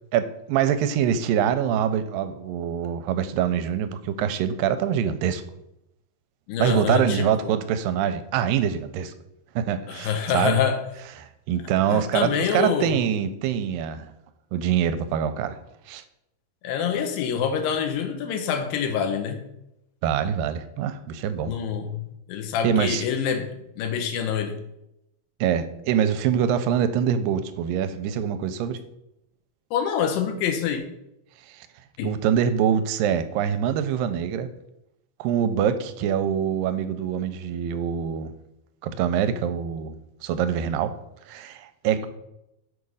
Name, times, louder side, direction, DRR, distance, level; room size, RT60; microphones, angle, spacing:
voice 1, 0.1-5.4 6.6-9.1 9.6-10.6 11.2-14.1 14.5-15.6 15.9-16.0 20.0-21.5 22.6-23.0 25.4-28.8 31.5-31.7 32.0-34.5 35.2-38.3 38.8-40.9 41.3-42.1, right 9 dB, 85° right, 10 dB, 2.2 m, -24 dB
voice 2, 6.5-7.5 9.9-10.8 11.9-12.9 16.6-19.4 21.4-23.5 23.8-24.6 29.7-30.8 32.0-32.1 42.0-42.1, left 7 dB, 90° left, 6 dB, 2.7 m, -26 dB
6.5 x 4.8 x 5.4 m, 0.85 s
omnidirectional pair, 4.0 m